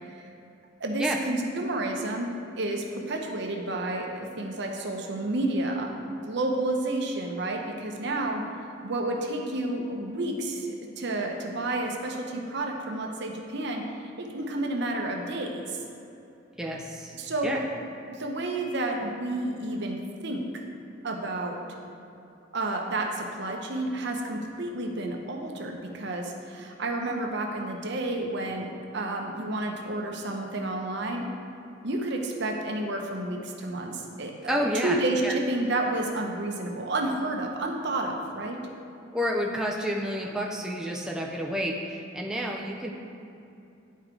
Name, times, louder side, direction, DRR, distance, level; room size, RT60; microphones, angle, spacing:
voice 1, 0.8-5.9 6.2-8.4 8.8-13.8 14.2-15.6 17.2-17.6 18.1-20.4 21.0-21.6 22.5-28.7 28.9-31.3 31.8-38.6, right 2 dB, 60° right, 2 dB, 0.9 m, -30 dB
voice 2, 16.6-17.1 17.4-17.6 34.5-35.4 39.1-42.9, equal, 5° right, -1 dB, 0.4 m, -29 dB
10.5 x 4.6 x 3.8 m, 2.7 s
head